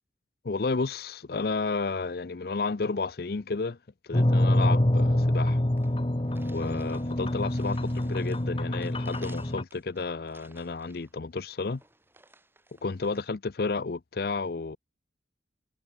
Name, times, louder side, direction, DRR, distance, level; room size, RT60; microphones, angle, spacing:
voice 1, 0.4-3.8 4.0-5.6 6.5-11.8 12.8-14.8, left 4 dB, 60° left, 0.6 m, -32 dB
sound 1, 4.1-9.6, left 1 dB, 30° left, 1.1 m, -26 dB
sound 2, 5.4-5.5 5.8-13.3, right 2 dB, 10° right, 7.1 m, -57 dB
head